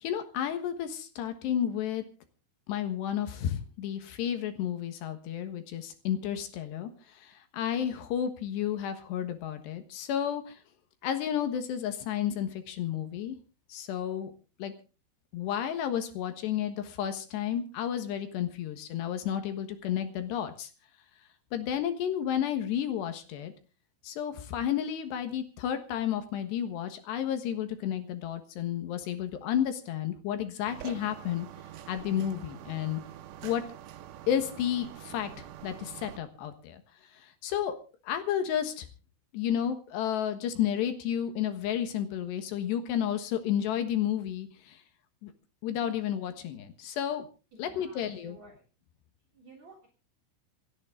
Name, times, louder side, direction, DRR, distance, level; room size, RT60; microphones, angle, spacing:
voice 1, 0.0-2.0 2.7-6.9 7.2-10.6 11.0-13.4 13.7-14.3 14.6-14.7 15.3-20.7 21.5-23.5 24.0-31.5 31.9-33.0 33.4-33.6 34.3-36.8 37.4-37.8 38.0-38.9 39.3-44.8 45.2-45.3 45.6-47.3 47.6-48.4, left 10 dB, 70° left, 8 dB, 3.3 m, -32 dB
sound 1, 30.7-36.2, right 12 dB, 85° right, 3.6 m, -46 dB
voice 2, 47.5-48.6 49.3-49.9, right 2 dB, 40° right, 0 dB, 4.3 m, -53 dB
27.5 x 9.5 x 3.7 m, 0.34 s
omnidirectional pair, 5.5 m